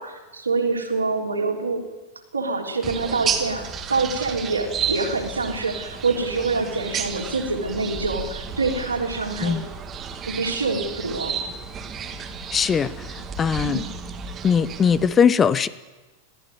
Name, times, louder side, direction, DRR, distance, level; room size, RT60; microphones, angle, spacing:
voice 1, 0.0-1.8 2.3-9.6 10.3-11.4 13.6-13.9, right 3 dB, 80° right, 0 dB, 3.8 m, -26 dB
sound 1, 2.8-15.1, right 6 dB, 25° right, 2.1 m, -32 dB
voice 2, 12.5-13.8 14.4-15.7, left 7 dB, 20° left, 17 dB, 0.8 m, -20 dB
21.5 x 15.0 x 9.4 m, 1.2 s
figure-of-eight pair, 90°, 0 cm